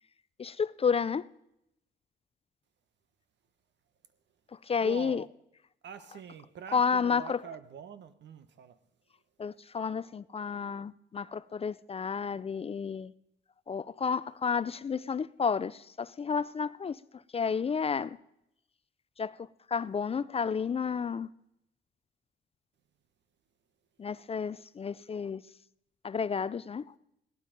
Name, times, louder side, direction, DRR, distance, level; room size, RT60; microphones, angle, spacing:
voice 1, 0.4-1.2 4.5-5.2 6.7-7.4 9.4-13.1 13.7-18.2 19.2-21.3 24.0-25.4 26.0-26.9, left 6 dB, 30° left, 0.4 m, -31 dB
voice 2, 4.8-5.2 5.8-8.8, right 7 dB, 65° right, 1.2 m, -45 dB
16.5 x 12.0 x 5.2 m
cardioid pair, 90°, 20 cm